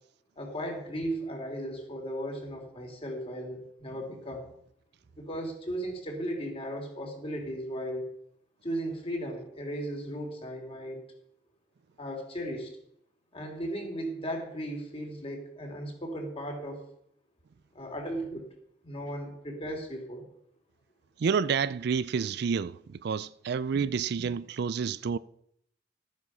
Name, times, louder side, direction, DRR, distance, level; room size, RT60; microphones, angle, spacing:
voice 1, 0.4-4.5 5.2-8.1 8.6-11.0 12.0-12.7 13.3-16.8 17.7-18.5 18.8-20.3, equal, 30° left, 3.2 m, -36 dB
voice 2, 21.2-25.2, right 6 dB, 60° right, 0.4 m, -29 dB
13.5 x 9.5 x 5.7 m
head